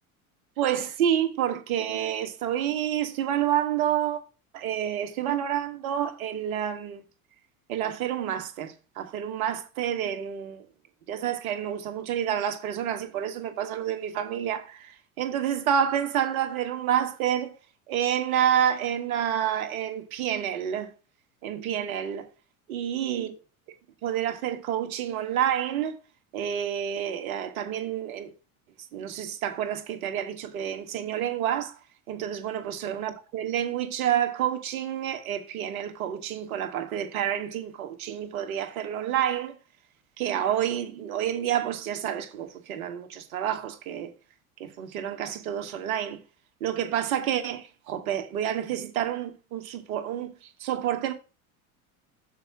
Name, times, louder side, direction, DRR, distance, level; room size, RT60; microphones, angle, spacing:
voice 1, 0.6-4.2 4.5-7.0 7.7-10.7 11.1-17.5 17.9-20.9 21.4-22.3 22.7-23.3 24.0-25.9 26.3-28.3 28.9-31.8 32.1-39.6 40.2-44.1 44.6-46.2 46.6-51.1, right 10 dB, 70° right, 1.6 m, -29 dB
6.8 x 4.8 x 6.0 m
hypercardioid pair, 80°, 44 cm